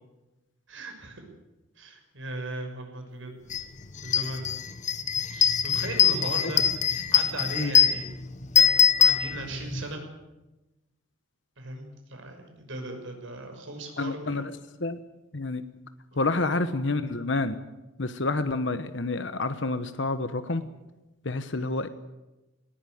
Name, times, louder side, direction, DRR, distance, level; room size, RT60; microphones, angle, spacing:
voice 1, 0.7-1.2 1.8-3.3 4.0-4.5 5.3-8.1 8.5-10.0 11.6-14.5 16.1-16.7 21.5-21.8, right 1 dB, 65° right, 3 dB, 6.3 m, -38 dB
sound 1, 3.5-3.6 4.0-9.8, left 7 dB, 35° left, 1.1 m, -23 dB
voice 2, 14.0-14.5 14.8-15.0 15.3-15.6 16.2-17.6 18.0-20.6 21.2-21.9, left 2 dB, 60° left, 11 dB, 1.1 m, -28 dB
19.0 x 18.5 x 9.4 m, 1.0 s
head